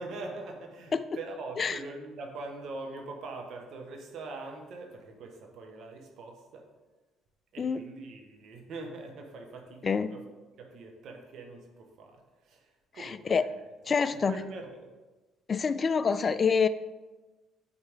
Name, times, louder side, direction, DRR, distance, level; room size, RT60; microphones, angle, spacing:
voice 1, 0.0-6.7 7.5-10.2 10.6-13.6 14.1-14.9, right 3 dB, 65° right, 2 dB, 1.3 m, -43 dB
voice 2, 13.0-13.4 13.9-14.4 15.5-16.7, left 5 dB, 40° left, 14 dB, 0.4 m, -26 dB
8.7 x 4.4 x 3.6 m, 1.2 s
hypercardioid pair, 60°, 0 cm